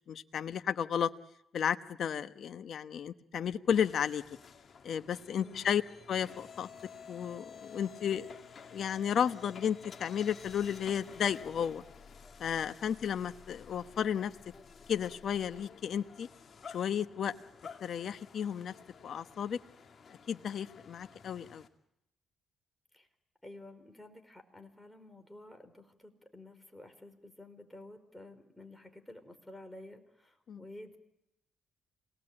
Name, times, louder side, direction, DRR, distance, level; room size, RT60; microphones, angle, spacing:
voice 1, 0.1-1.1 1.5-4.2 4.8-5.8 6.1-6.7 7.1-8.3 8.7-11.8 12.4-14.3 14.9-16.3 16.7-17.3 17.8-18.7 19.0-19.6 20.3-21.6 30.5-30.6, left 8 dB, 60° left, 10 dB, 1.0 m, -33 dB
sound 1, 3.7-21.7, left 6 dB, 45° left, 2.5 m, -52 dB
voice 2, 5.4-5.7 22.9-23.1 23.4-31.0, left 1 dB, 5° left, 6 dB, 4.7 m, -51 dB
27.5 x 19.0 x 8.8 m, 0.82 s
cardioid pair, 90°, 0 cm